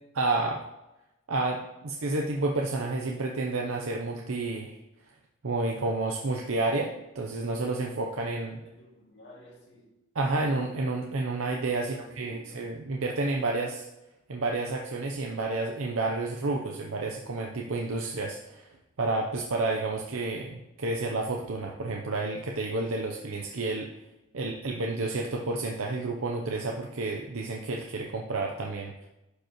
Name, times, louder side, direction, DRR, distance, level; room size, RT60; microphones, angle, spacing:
voice 1, 0.1-0.6 1.3-4.8 5.4-8.6 10.1-13.9 14.3-18.7 19.0-23.9 24.3-29.1, right 2 dB, 75° right, 0 dB, 0.7 m, -30 dB
voice 2, 8.6-9.9 11.7-12.7, equal, 55° left, -3 dB, 2.2 m, -53 dB
11.5 x 5.0 x 3.0 m, 0.93 s
head